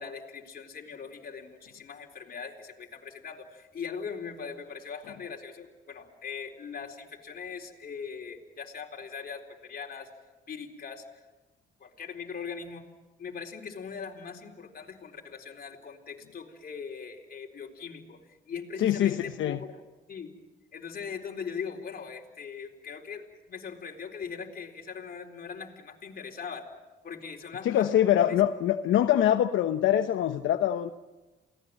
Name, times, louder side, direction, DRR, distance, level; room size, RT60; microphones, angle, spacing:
voice 1, 0.0-10.1 10.5-11.1 11.8-12.9 13.2-19.8 20.1-20.3 20.7-26.7 27.0-28.4, left 6 dB, 50° left, 2 dB, 4.1 m, -40 dB
voice 2, 18.8-19.6 27.6-30.9, left 11 dB, 75° left, 7 dB, 0.9 m, -24 dB
28.5 x 18.5 x 7.7 m, 1.2 s
cardioid pair, 90°, 20 cm